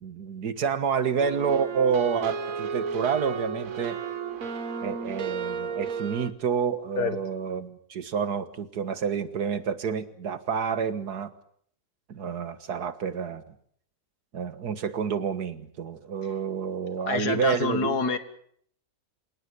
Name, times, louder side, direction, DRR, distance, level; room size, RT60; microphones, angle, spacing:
voice 1, 0.0-4.0 4.8-11.3 12.1-13.4 14.3-18.0, right 6 dB, 90° right, 12 dB, 2.0 m, -29 dB
sound 1, 1.2-6.3, right 6 dB, 60° right, 1.8 m, -33 dB
voice 2, 17.1-18.2, left 5 dB, 90° left, 11 dB, 2.3 m, -27 dB
27.5 x 18.0 x 8.3 m, 0.65 s
omnidirectional pair, 1.6 m